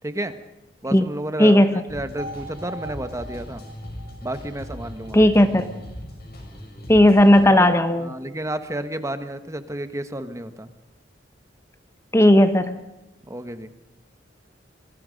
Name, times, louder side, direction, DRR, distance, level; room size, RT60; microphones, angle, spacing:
voice 1, 0.0-0.4 0.8-3.6 4.2-5.3 7.4-7.7 8.0-10.7 13.2-13.7, right 1 dB, 15° right, 10 dB, 1.4 m, -31 dB
voice 2, 1.4-1.7 5.1-5.7 6.9-8.1 12.1-12.8, left 1 dB, 15° left, 9 dB, 1.0 m, -15 dB
sound 1, 1.9-7.4, equal, 60° left, 6.5 m, -39 dB
sound 2, 2.2-6.2, right 2 dB, 40° right, 6.8 m, -42 dB
26.0 x 23.0 x 5.3 m, 0.97 s
head